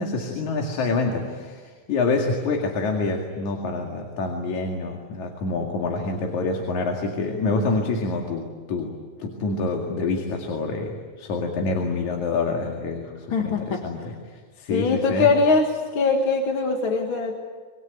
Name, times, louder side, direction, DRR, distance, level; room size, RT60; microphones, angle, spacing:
voice 1, 0.0-15.3, left 3 dB, 75° left, 2 dB, 3.6 m, -27 dB
voice 2, 13.3-13.8 14.7-17.4, left 4 dB, 50° left, 2 dB, 2.4 m, -22 dB
26.5 x 22.0 x 9.3 m, 1.5 s
omnidirectional pair, 3.4 m